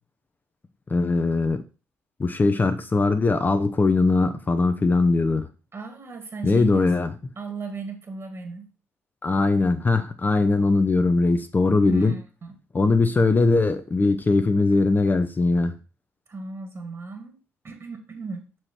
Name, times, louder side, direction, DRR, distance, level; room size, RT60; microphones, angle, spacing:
voice 1, 0.9-1.6 2.2-5.5 6.4-7.1 9.2-12.2 12.7-15.7, left 3 dB, 25° left, 0.7 m, -20 dB
voice 2, 5.7-6.9 7.4-8.7 11.8-12.6 16.3-18.5, right 4 dB, 40° right, 2.3 m, -36 dB
6.3 x 4.7 x 4.4 m
figure-of-eight pair, 45°, 7 cm